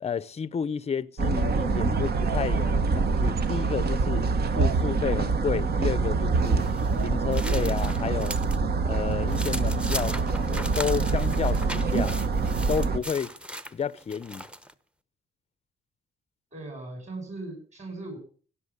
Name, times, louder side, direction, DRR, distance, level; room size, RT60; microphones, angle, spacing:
voice 1, 0.0-4.3 4.5-6.7 7.0-8.4 8.8-12.2 12.7-13.3 13.7-14.4, left 7 dB, 30° left, 0.6 m, -31 dB
sound 1, 1.2-13.0, right 4 dB, 50° right, 1.3 m, -25 dB
sound 2, 6.4-8.6 9.0-14.7, equal, 5° right, 0.9 m, -38 dB
voice 2, 16.5-18.2, right 2 dB, 35° right, 6.5 m, -38 dB
16.0 x 7.0 x 8.3 m
cardioid pair, 90°, 20 cm